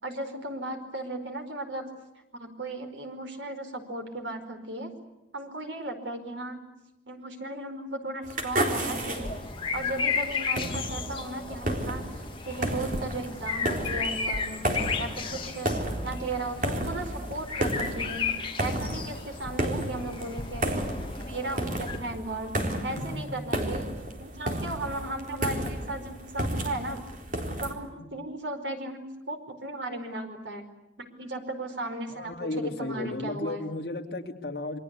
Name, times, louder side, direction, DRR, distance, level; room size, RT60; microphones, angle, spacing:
voice 1, 0.0-1.9 2.3-4.9 5.3-6.6 7.1-9.3 9.7-12.1 12.4-14.6 15.0-15.8 16.0-20.8 21.3-22.6 22.8-23.9 24.2-27.0 27.6-30.7 31.0-33.6, right 2 dB, 85° right, 6 dB, 4.8 m, -36 dB
sound 1, 8.2-27.7, right 1 dB, 45° right, 4.0 m, -33 dB
sound 2, 8.9-22.0, left 5 dB, 30° left, 2.1 m, -34 dB
voice 2, 32.1-34.8, left 2 dB, 60° left, 3 dB, 2.8 m, -34 dB
28.0 x 23.5 x 8.4 m, 0.97 s
head